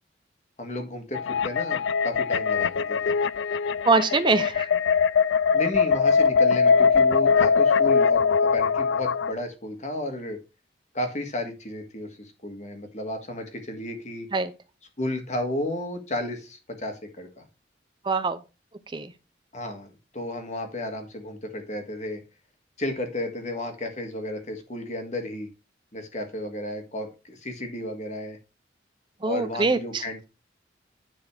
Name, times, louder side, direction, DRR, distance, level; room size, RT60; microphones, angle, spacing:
voice 1, 0.6-3.2 5.5-10.4 10.9-14.3 15.0-17.4 19.5-22.2 22.8-25.5 25.9-28.4 29.2-30.3, left 1 dB, 40° left, 5 dB, 1.7 m, -33 dB
sound 1, 1.1-9.3, left 5 dB, 80° left, 0.4 m, -21 dB
voice 2, 3.9-4.7 14.3-14.5 18.0-18.4 18.9-19.1 29.2-30.0, right 3 dB, 25° right, 11 dB, 0.5 m, -23 dB
10.0 x 4.1 x 4.8 m, 0.30 s
head